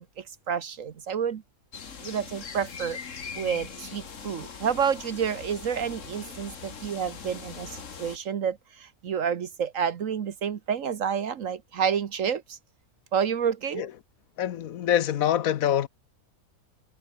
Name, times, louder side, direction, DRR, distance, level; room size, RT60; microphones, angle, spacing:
voice 1, 0.0-1.4 2.0-3.0 3.4-12.6 13.1-13.9, right 7 dB, 65° right, 1.4 m, -29 dB
sound 1, 1.7-8.2, left 6 dB, 60° left, 1.9 m, -41 dB
voice 2, 14.4-15.9, left 11 dB, 75° left, 1.3 m, -25 dB
omnidirectional pair, 1.5 m